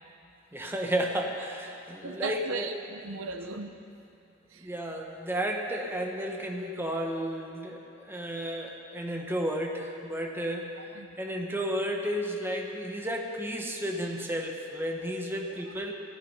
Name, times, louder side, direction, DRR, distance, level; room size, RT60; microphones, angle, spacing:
voice 1, 0.5-2.7 4.6-10.7 11.2-15.9, equal, 10° right, 1 dB, 1.1 m, -32 dB
voice 2, 2.0-3.8 10.9-11.1 15.4-15.6, right 3 dB, 85° right, 8 dB, 0.7 m, -36 dB
14.5 x 11.5 x 5.6 m, 2.7 s
head